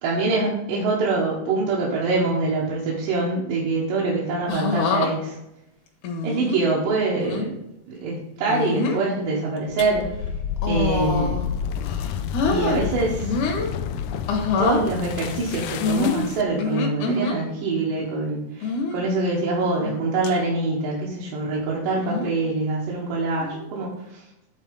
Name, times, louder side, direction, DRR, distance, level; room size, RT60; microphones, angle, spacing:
voice 1, 0.0-5.4 6.2-7.6 7.9-10.1 10.7-11.5 12.4-13.3 14.6-24.2, right 3 dB, 75° right, -5 dB, 2.8 m, -24 dB
sound 1, 4.5-5.1 6.0-6.6 7.2-7.5 8.5-9.0 9.6-9.8 10.6-11.5 11.8-12.8 13.2-13.7 14.3-14.8 15.8-17.4 18.6-19.0 19.6-20.0 20.2-20.3 21.9-22.3 23.4-23.7, left 4 dB, 65° left, 2.3 m, -25 dB
sound 2, 9.7-16.6, left 8 dB, 85° left, 1.8 m, -30 dB
8.9 x 4.2 x 5.2 m, 0.86 s
omnidirectional pair, 4.1 m